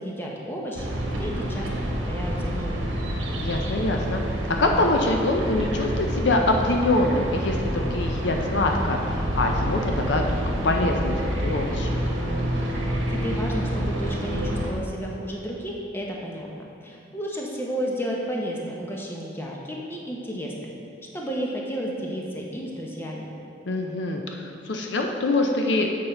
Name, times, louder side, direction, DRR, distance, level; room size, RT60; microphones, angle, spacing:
voice 1, 0.0-2.8 13.1-20.7 21.1-23.3, equal, 10° left, -2 dB, 0.8 m, -32 dB
sound 1, 0.8-14.7, equal, 70° right, 1.1 m, -28 dB
voice 2, 3.4-4.2 4.6-11.9 23.7-25.9, left 2 dB, 60° left, 2 dB, 0.5 m, -24 dB
7.9 x 5.5 x 4.3 m, 2.7 s
head